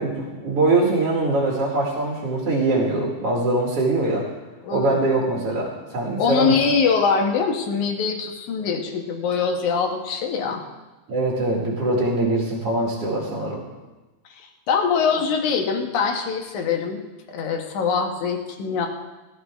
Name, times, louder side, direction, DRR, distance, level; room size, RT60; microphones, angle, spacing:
voice 1, 0.0-4.3 4.7-6.6 11.1-13.6, right 2 dB, 55° right, -4 dB, 3.0 m, -22 dB
voice 2, 4.6-5.2 6.2-10.6 14.4-17.0 17.3-18.9, left 5 dB, 80° left, 3 dB, 2.8 m, -23 dB
18.0 x 13.5 x 3.6 m, 1.2 s
omnidirectional pair, 3.4 m